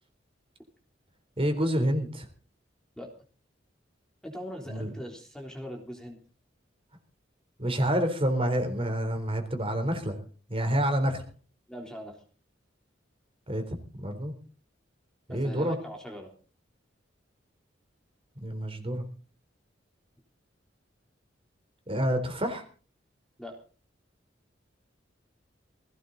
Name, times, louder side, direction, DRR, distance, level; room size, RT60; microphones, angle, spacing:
voice 1, 1.4-2.3 4.7-4.9 7.6-10.2 10.5-11.2 13.5-14.3 15.3-15.8 18.4-19.0 21.9-22.6, equal, 30° right, 6 dB, 4.0 m, -28 dB
voice 2, 4.2-6.2 11.7-12.2 15.3-16.3 23.4-23.6, equal, 5° left, 1 dB, 3.5 m, -41 dB
20.0 x 17.0 x 4.0 m, 0.40 s
head